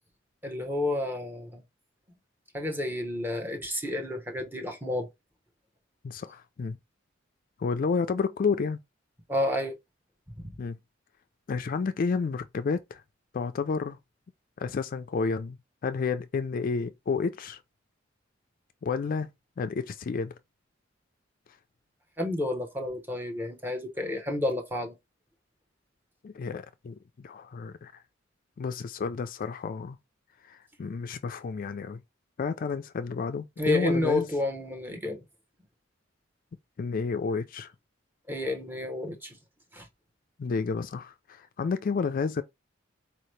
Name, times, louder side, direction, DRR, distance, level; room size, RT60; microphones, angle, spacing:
voice 1, 0.4-1.6 2.5-5.1 9.3-9.7 10.4-10.5 22.2-24.9 33.6-35.2 38.3-39.4 39.7-39.9, left 1 dB, 10° right, 0.9 m, -30 dB
voice 2, 6.0-6.8 7.6-8.8 10.6-10.8 11.5-13.0 13.3-14.0 14.6-15.6 15.8-17.6 18.8-19.3 19.6-20.4 26.2-28.0 28.6-30.0 30.4-32.0 32.4-34.3 36.8-37.7 40.4-42.4, left 5 dB, 45° left, 0.3 m, -30 dB
4.3 x 2.8 x 3.1 m
head